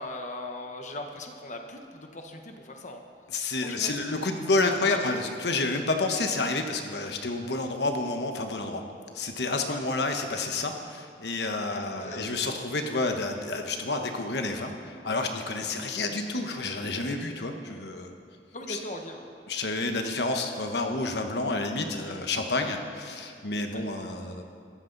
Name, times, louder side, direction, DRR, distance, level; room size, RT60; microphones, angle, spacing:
voice 1, 0.0-3.0 3.4-4.4 4.6-5.1 9.7-9.8 11.7-12.3 18.5-19.3 23.7-23.9, left 1 dB, 45° left, 4 dB, 1.2 m, -39 dB
voice 2, 3.3-8.8 9.1-18.1 18.7-18.8 19.5-24.4, left 3 dB, 70° left, 4 dB, 1.2 m, -29 dB
23.5 x 13.5 x 4.0 m, 2.2 s
head